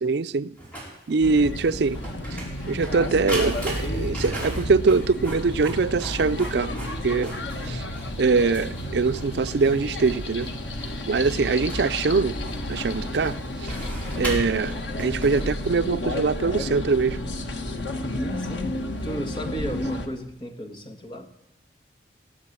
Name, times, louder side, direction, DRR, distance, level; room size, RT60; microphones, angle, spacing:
voice 1, 0.0-0.6 1.1-2.0 2.7-6.7 7.0-7.3 7.6-7.8 8.2-10.5 11.1-12.4 12.7-13.7 14.2-17.2, right 4 dB, 75° right, 0.5 m, -23 dB
Printer, 0.6-15.9, right 1 dB, 10° left, 4.4 m, -39 dB
sound 1, 1.2-20.1, left 1 dB, 90° left, 1.5 m, -31 dB
voice 2, 18.1-21.3, equal, 25° left, 1.5 m, -34 dB
19.0 x 7.6 x 8.6 m
head